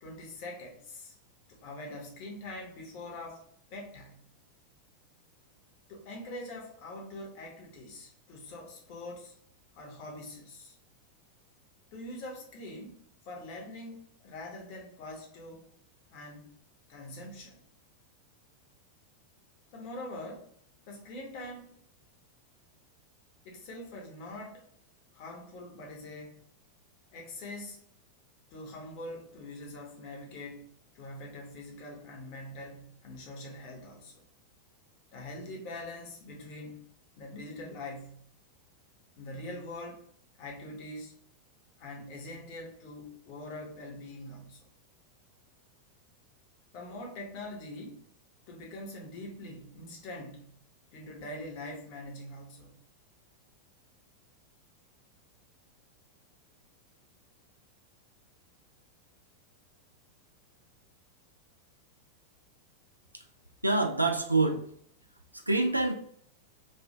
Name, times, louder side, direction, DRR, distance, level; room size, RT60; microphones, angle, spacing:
voice 1, 0.0-1.2 1.5-4.2 5.9-9.3 9.7-10.8 11.9-15.7 16.1-16.5 16.9-17.6 19.7-20.5 20.9-21.7 23.4-24.7 25.1-26.4 27.1-27.8 28.5-30.7 30.9-34.2 35.1-36.8 37.2-38.2 39.2-40.1 40.4-41.1 41.8-44.7 46.7-48.0 48.5-50.5 50.9-52.8, left 1 dB, 45° left, 0 dB, 0.8 m, -43 dB
voice 2, 63.6-64.7 65.3-65.9, right 2 dB, 85° right, 5 dB, 0.4 m, -26 dB
3.2 x 2.3 x 2.7 m, 0.63 s
figure-of-eight pair, 90°, 0 cm